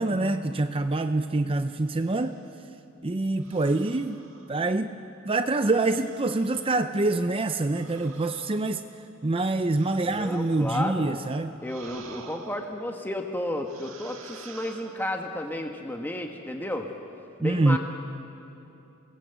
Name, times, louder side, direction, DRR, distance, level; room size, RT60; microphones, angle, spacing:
voice 1, 0.0-2.3 3.0-4.2 4.5-4.9 5.3-8.8 9.2-11.5 17.4-17.8, right 2 dB, 25° right, 8 dB, 0.6 m, -25 dB
sound 1, 1.8-2.5 3.4-5.0 5.7-6.9 7.6-11.0 11.6-13.2 13.7-15.4, right 5 dB, 75° right, 1.9 m, -50 dB
voice 2, 10.0-11.1 11.6-16.9 17.4-17.8, left 1 dB, 10° left, 3 dB, 1.3 m, -32 dB
28.0 x 19.5 x 8.1 m, 2.8 s
head